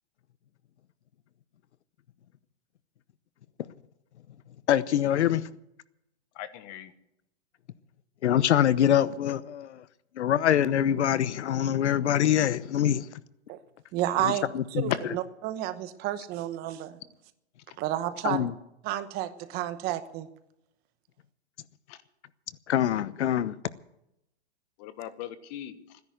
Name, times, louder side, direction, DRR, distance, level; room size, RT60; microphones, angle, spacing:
voice 1, 4.7-5.5 8.2-9.8 10.2-13.1 14.2-14.9 18.2-18.5 22.7-23.5, left 10 dB, 90° left, 0.9 m, -24 dB
voice 2, 6.3-6.9 17.7-17.8 21.9-22.0 24.8-26.0, left 11 dB, 40° left, 1.3 m, -41 dB
voice 3, 13.9-17.0 17.8-18.5 18.8-20.3, right 12 dB, 30° right, 1.0 m, -31 dB
15.5 x 10.5 x 7.9 m
hypercardioid pair, 150°, 33 cm